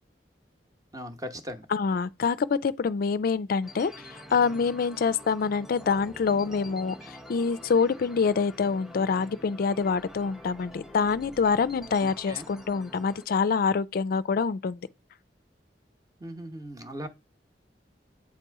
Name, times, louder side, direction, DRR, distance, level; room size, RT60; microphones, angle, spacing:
voice 1, 0.9-1.7 12.0-12.5 16.2-17.1, equal, 20° right, 0.9 m, -39 dB
voice 2, 1.7-14.8, left 5 dB, 55° left, 0.4 m, -26 dB
sound 1, 3.6-13.3, equal, ahead, 0.5 m, -46 dB
8.4 x 3.0 x 4.6 m
head